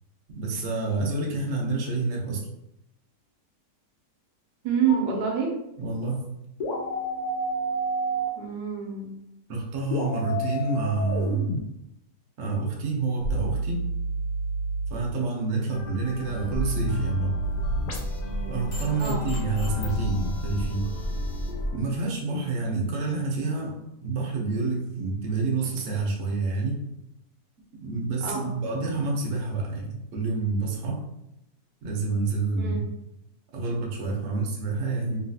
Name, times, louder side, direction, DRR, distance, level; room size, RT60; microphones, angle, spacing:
voice 1, 0.3-2.5 5.8-6.3 9.5-11.5 12.4-13.8 14.9-17.3 18.5-20.9 21.7-26.8 27.8-31.0 31.8-32.9 33.5-35.2, right 3 dB, 55° right, -1 dB, 0.9 m, -28 dB
voice 2, 4.6-5.5 8.4-9.1 15.6-15.8 19.0-19.2 28.2-28.5 32.6-32.8, right 7 dB, 80° right, 0 dB, 1.2 m, -27 dB
sound 1, 4.9-5.0 6.6-8.3 9.9-11.6 13.2-14.9 16.5-18.2 19.8-21.5, right 2 dB, 70° left, 1.2 m, -30 dB
sound 2, 15.7-21.8, left 3 dB, 90° left, 1.3 m, -36 dB
sound 3, 17.4-21.7, equal, 45° left, 1.0 m, -32 dB
3.1 x 2.7 x 2.7 m, 0.84 s
omnidirectional pair, 1.8 m